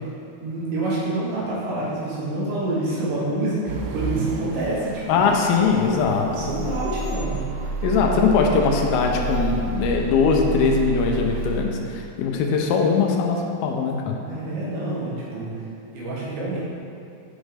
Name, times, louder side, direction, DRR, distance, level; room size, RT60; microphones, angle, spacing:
voice 1, 0.4-5.2 6.3-7.4 14.3-15.5 15.9-16.6, right 2 dB, 65° right, -7 dB, 2.5 m, -27 dB
sound 1, 3.7-11.6, right 4 dB, 85° right, 1.8 m, -29 dB
voice 2, 5.1-6.5 7.8-14.2, left 5 dB, 85° left, 1 dB, 2.5 m, -21 dB
6.3 x 6.2 x 3.3 m, 2.7 s
omnidirectional pair, 4.4 m